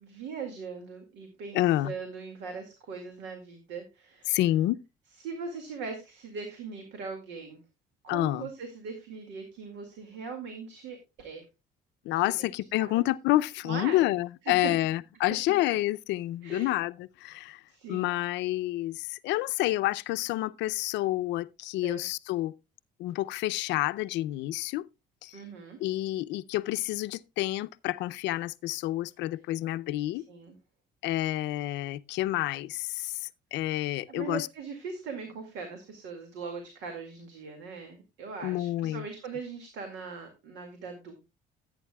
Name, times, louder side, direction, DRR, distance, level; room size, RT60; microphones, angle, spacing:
voice 1, 0.0-4.4 5.2-7.6 8.0-11.4 12.1-12.5 12.8-13.0 13.6-14.1 14.4-14.7 16.4-16.8 17.7-18.2 21.8-22.1 25.3-25.8 30.3-30.5 34.1-41.2, right 5 dB, 85° right, 2.1 m, -40 dB
voice 2, 1.5-1.9 4.3-4.8 8.1-8.5 12.0-17.6 17.9-22.5 23.0-24.8 25.2-25.4 25.8-30.2 31.0-34.5 38.4-39.0, left 16 dB, 80° left, 0.5 m, -29 dB
16.0 x 8.9 x 2.3 m
cardioid pair, 115°, 18 cm